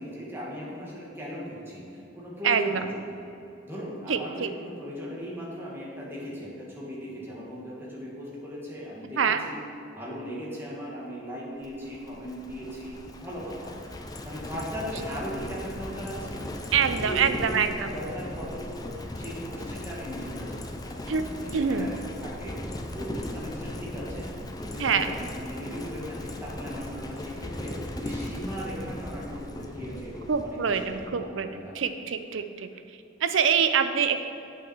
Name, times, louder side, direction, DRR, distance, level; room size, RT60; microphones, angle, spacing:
voice 1, 0.0-3.2 3.6-9.6 9.9-13.7 14.2-16.4 16.7-22.0 22.2-22.6 22.9-24.3 24.6-31.7, equal, 10° right, -7 dB, 2.0 m, -38 dB
voice 2, 4.1-4.5 9.2-9.4 16.7-17.7 21.1-21.2 21.5-21.9 24.8-25.1 30.3-32.7 33.2-34.2, right 6 dB, 80° right, 9 dB, 0.5 m, -25 dB
Livestock farm animals working animals, 11.6-31.3, left 1 dB, 20° left, 0.6 m, -38 dB
8.4 x 6.1 x 4.6 m, 2.8 s
head